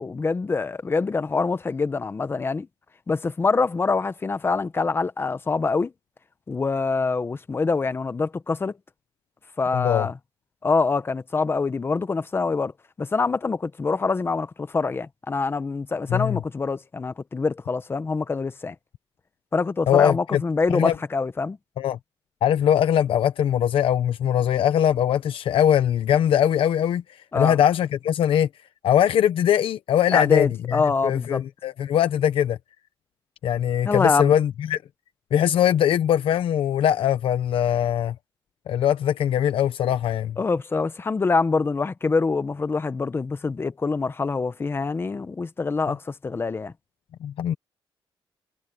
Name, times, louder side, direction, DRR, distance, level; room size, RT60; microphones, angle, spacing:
voice 1, 0.0-2.7 3.1-5.9 6.5-8.7 9.6-10.2 10.6-12.7 13.0-18.7 19.5-21.6 27.3-27.6 30.1-31.4 33.8-34.3 40.4-46.7, left 4 dB, 25° left, 1.0 m, -25 dB
voice 2, 9.7-10.1 16.1-16.4 19.9-20.4 20.7-20.9 21.8-22.0 22.4-27.0 27.3-28.5 28.8-32.6 33.4-34.8 35.3-38.1 38.7-40.4 47.2-47.5, left 10 dB, 80° left, 0.9 m, -21 dB
wide cardioid pair, 145°, 9 cm